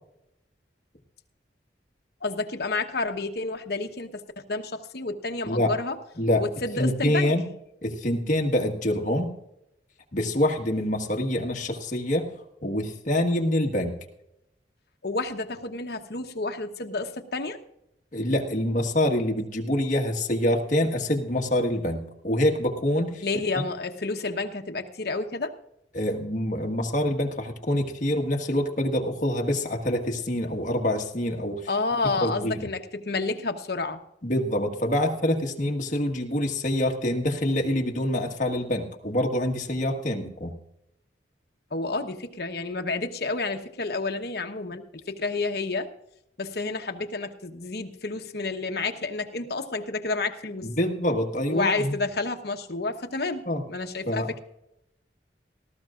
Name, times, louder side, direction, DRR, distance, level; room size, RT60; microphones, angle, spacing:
voice 1, 2.2-4.2 4.5-6.0 6.4-7.3 15.0-17.6 23.2-25.5 31.7-34.0 41.7-45.9 46.4-50.7 51.5-54.4, left 3 dB, 60° left, 5 dB, 1.0 m, -30 dB
voice 2, 6.2-6.5 6.8-7.5 7.8-9.3 10.1-12.3 12.6-14.0 18.1-23.2 23.5-23.6 25.9-31.7 32.2-32.6 34.2-40.5 50.6-52.0 53.5-53.6 54.0-54.3, left 1 dB, 45° left, 2 dB, 1.5 m, -26 dB
18.5 x 14.5 x 2.5 m, 0.82 s
head